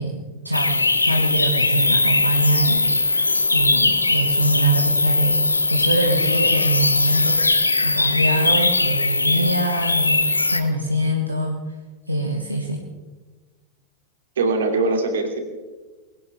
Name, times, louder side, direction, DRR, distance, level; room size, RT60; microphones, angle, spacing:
voice 1, 0.0-2.9 3.5-5.4 5.7-7.5 7.8-10.2 10.5-11.6 12.1-12.8, right 1 dB, 90° right, 1 dB, 1.4 m, -23 dB
sound 1, 0.5-10.6, left 2 dB, 80° left, 0.9 m, -20 dB
voice 2, 14.4-15.4, right 3 dB, 65° right, 4 dB, 2.8 m, -21 dB
21.0 x 17.5 x 3.6 m, 1.3 s
figure-of-eight pair, 90°, 0 cm